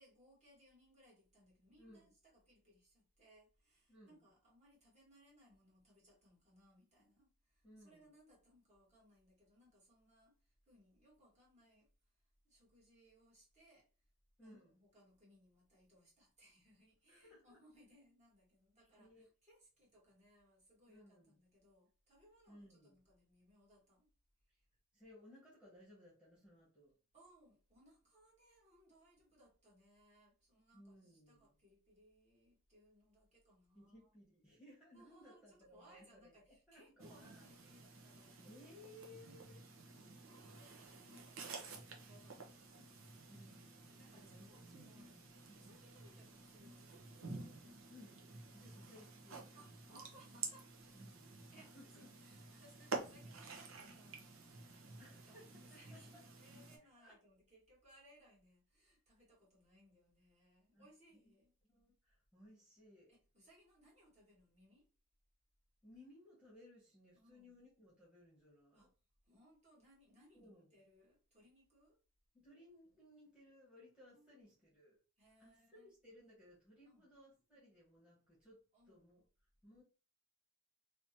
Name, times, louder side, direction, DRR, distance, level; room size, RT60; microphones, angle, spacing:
voice 1, 0.0-11.9 12.4-13.9 14.4-24.1 27.1-34.1 34.9-38.4 39.2-39.4 39.7-40.0 40.5-43.3 44.0-45.1 45.5-47.2 49.5-50.7 51.5-61.5 63.1-64.9 67.1-67.6 68.7-68.9 69.2-72.0 74.1-74.4 75.2-75.9 76.8-77.1 78.7-79.1, right 1 dB, 35° right, 1.7 m, -67 dB
voice 2, 1.8-2.1 3.9-4.3 7.6-8.1 14.4-14.8 17.1-17.6 18.8-19.3 20.9-21.4 22.5-22.9 24.9-27.0 30.7-31.5 33.7-37.5 38.3-39.6 43.3-45.8 47.9-48.2 48.5-49.5 50.9-52.1 55.0-56.0 57.0-57.2 60.7-60.9 61.7-63.1 65.8-68.9 70.3-70.7 72.3-75.0 75.4-79.2 79.6-79.8, left 1 dB, 5° right, 1.3 m, -62 dB
sound 1, 37.0-56.8, right 4 dB, 80° right, 0.9 m, -51 dB
3.4 x 3.0 x 2.8 m
head